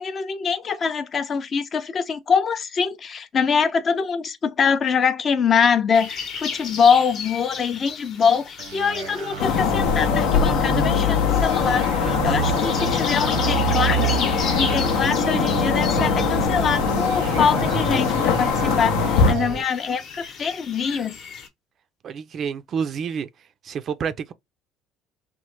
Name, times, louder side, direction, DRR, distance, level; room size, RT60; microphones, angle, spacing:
voice 1, 0.0-21.2, left 6 dB, 35° left, 0.5 m, -23 dB
sound 1, 5.9-21.5, left 5 dB, 55° left, 0.8 m, -35 dB
sound 2, 8.6-19.6, right 3 dB, 90° right, 0.8 m, -27 dB
sound 3, 9.4-19.3, left 7 dB, 80° left, 0.6 m, -22 dB
voice 2, 22.0-23.3 23.6-24.3, right 7 dB, 45° right, 0.4 m, -28 dB
3.0 x 2.1 x 3.0 m
cardioid pair, 115°, 0 cm